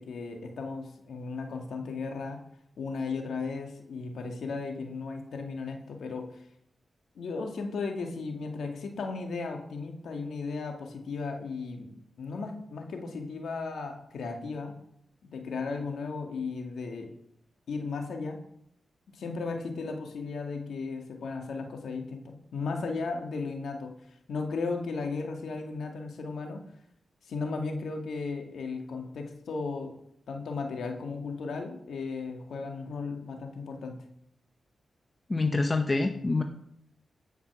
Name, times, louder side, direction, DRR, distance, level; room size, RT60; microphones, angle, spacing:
voice 1, 0.0-2.4 2.8-6.4 7.2-11.9 12.2-14.8 15.3-17.1 17.7-18.5 19.1-24.0 24.3-26.6 27.3-29.9 30.3-34.0, left 4 dB, 80° left, 3 dB, 2.0 m, -35 dB
voice 2, 35.3-36.4, left 3 dB, 30° left, 5 dB, 1.0 m, -26 dB
15.5 x 5.9 x 6.1 m, 0.72 s
supercardioid pair, 45°, 0 cm